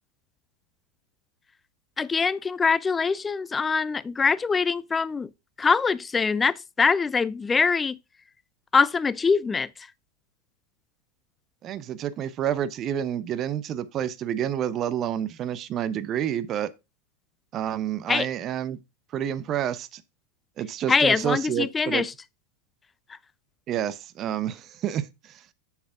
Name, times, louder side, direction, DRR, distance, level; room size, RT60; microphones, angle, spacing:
voice 1, 2.0-5.3 5.6-8.0 8.7-9.7 18.1-18.3 20.9-22.1, left 5 dB, 15° left, 0.4 m, -23 dB
voice 2, 11.6-16.7 17.5-18.8 19.1-20.0 20.6-22.1 23.7-25.5, right 10 dB, 30° right, 0.8 m, -29 dB
7.5 x 7.0 x 3.6 m
figure-of-eight pair, 90°, 0 cm